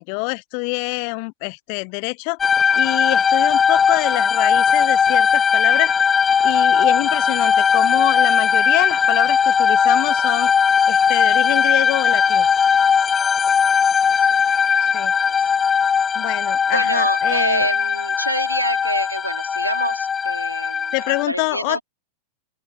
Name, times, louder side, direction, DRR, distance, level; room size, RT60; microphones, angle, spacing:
voice 1, 0.0-2.4 2.8-6.1 6.4-10.5 10.9-12.5 14.8-15.1 16.1-17.7 20.9-21.8, left 40 dB or more, 45° left, 1.1 m, -26 dB
sound 1, 2.4-21.2, left 6 dB, 20° left, 0.9 m, -18 dB
voice 2, 14.0-14.4 15.3-15.4 16.7-21.8, right 1 dB, 90° right, 3.2 m, -26 dB
open air
figure-of-eight pair, 90°, 0 cm